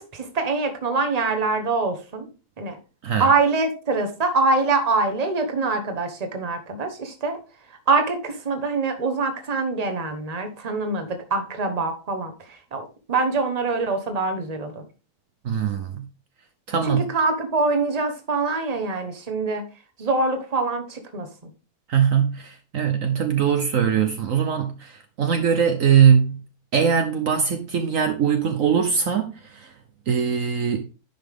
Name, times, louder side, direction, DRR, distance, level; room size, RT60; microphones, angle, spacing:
voice 1, 0.0-2.3 2.6-2.8 3.2-7.4 7.9-14.8 16.9-19.6 20.0-21.3, right 3 dB, 25° right, 1.2 m, -24 dB
voice 2, 15.4-16.1 16.7-17.0 21.9-26.4 26.7-29.7 30.1-30.8, right 7 dB, 60° right, 1.2 m, -21 dB
10.5 x 5.6 x 3.6 m
omnidirectional pair, 1.6 m